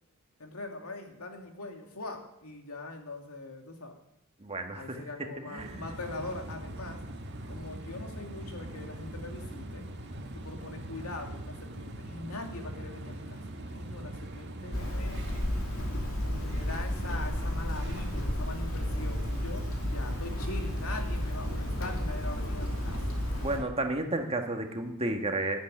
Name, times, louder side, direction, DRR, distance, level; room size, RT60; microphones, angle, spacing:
voice 1, 0.4-4.0 4.7-7.0 7.5-9.9 10.3-15.6 16.2-23.0, left 2 dB, 80° left, 3 dB, 2.7 m, -42 dB
voice 2, 4.4-5.0 5.5-5.9 23.4-25.6, right 2 dB, 25° right, 4 dB, 1.8 m, -32 dB
sound 1, 5.6-23.6, right 1 dB, 50° right, 1.7 m, -41 dB
Hammer, 14.7-23.6, left 1 dB, 65° left, 2.9 m, -32 dB
13.0 x 12.0 x 8.9 m, 0.83 s
head